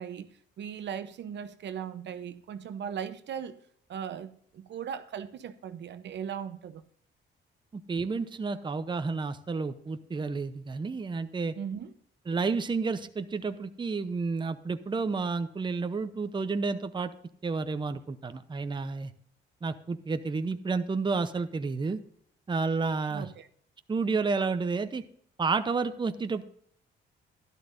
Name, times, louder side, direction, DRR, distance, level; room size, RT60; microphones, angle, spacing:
voice 1, 0.0-3.6 3.9-6.8 11.5-11.9 23.1-23.5, right 8 dB, 65° right, 0.8 m, -38 dB
voice 2, 7.7-11.5 12.3-17.1 17.4-19.1 19.6-22.0 22.5-23.3 23.9-25.0 25.4-26.4, right 4 dB, 25° right, 0.7 m, -30 dB
12.0 x 12.0 x 2.6 m
cardioid pair, 90°, 20 cm